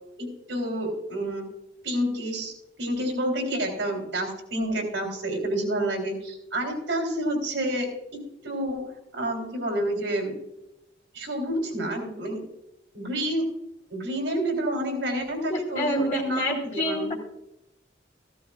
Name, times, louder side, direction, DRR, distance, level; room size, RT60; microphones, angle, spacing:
voice 1, 0.2-1.5 1.8-2.5 2.8-10.3 11.1-12.4 12.9-13.5 13.9-17.1, right 1 dB, 85° right, 2 dB, 3.6 m, -29 dB
voice 2, 15.5-17.1, equal, 40° left, -3 dB, 1.6 m, -27 dB
15.0 x 13.0 x 2.4 m, 0.89 s
head